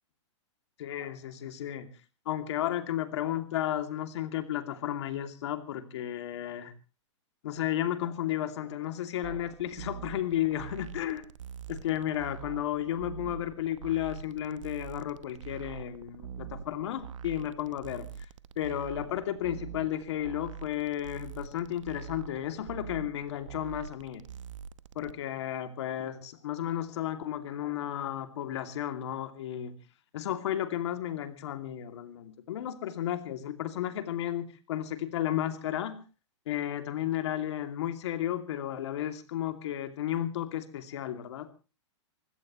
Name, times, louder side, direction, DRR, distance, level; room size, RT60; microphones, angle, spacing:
voice 1, 0.8-1.9 2.3-6.7 7.4-11.2 11.7-18.1 18.6-24.2 24.9-29.7 30.1-36.0 36.5-41.5, left 11 dB, 65° left, 7 dB, 2.6 m, -33 dB
sound 1, 9.2-25.1, right 8 dB, 85° right, 1.0 m, -44 dB
25.0 x 16.5 x 3.1 m, 0.34 s
hypercardioid pair, 150°, 16 cm